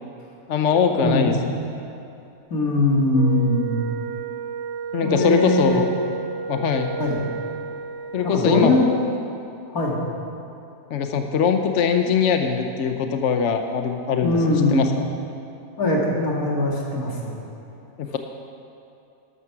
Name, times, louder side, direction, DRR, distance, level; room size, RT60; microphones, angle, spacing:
voice 1, 0.5-1.5 4.9-5.9 6.5-6.9 8.1-8.7 10.9-14.9 18.0-18.2, left 6 dB, 60° left, 6 dB, 1.0 m, -22 dB
voice 2, 2.5-3.8 5.0-5.8 7.0-7.2 8.2-8.8 9.7-10.0 14.2-14.9 15.8-17.3, left 2 dB, 80° left, -2 dB, 2.8 m, -21 dB
Wind instrument woodwind instrument, 3.1-8.7, right 5 dB, 60° right, 0.8 m, -32 dB
12.5 x 12.5 x 6.0 m, 2.8 s
omnidirectional pair, 1.5 m